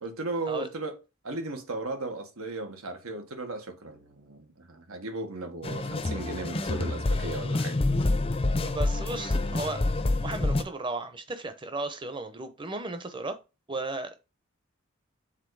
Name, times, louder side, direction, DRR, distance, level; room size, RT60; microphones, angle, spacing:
voice 1, 0.0-0.9 1.2-7.8, right 2 dB, 85° right, 1.5 m, -36 dB
sound 1, 5.6-10.6, left 2 dB, 25° left, 0.5 m, -27 dB
voice 2, 8.6-9.8 10.2-13.4 13.7-14.2, right 2 dB, 20° right, 0.8 m, -35 dB
7.4 x 3.9 x 4.8 m
head